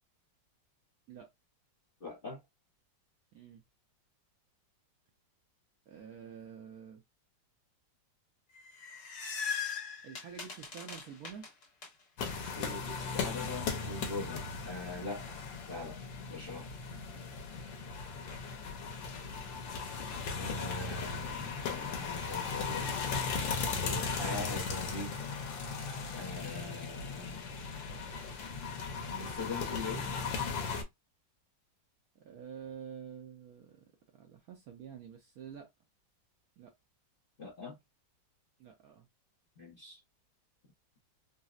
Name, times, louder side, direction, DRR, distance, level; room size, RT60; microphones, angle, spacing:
voice 1, 2.0-2.4 12.5-15.3 15.7-16.0 16.3-16.7 20.4-22.9 23.8-25.1 26.1-27.5 29.1-30.0 37.4-37.8 39.6-40.0, left 3 dB, 45° left, 0.7 m, -42 dB
voice 2, 3.3-3.6 5.9-7.0 10.0-11.4 16.9-17.3 18.2-18.6 32.1-33.8 34.1-35.7 36.6-36.7 38.6-39.1, right 8 dB, 70° right, 0.9 m, -48 dB
sound 1, 8.6-11.9, left 6 dB, 60° left, 1.6 m, -39 dB
sound 2, 12.2-30.8, left 5 dB, 85° left, 1.4 m, -37 dB
4.0 x 2.0 x 2.3 m
omnidirectional pair, 2.0 m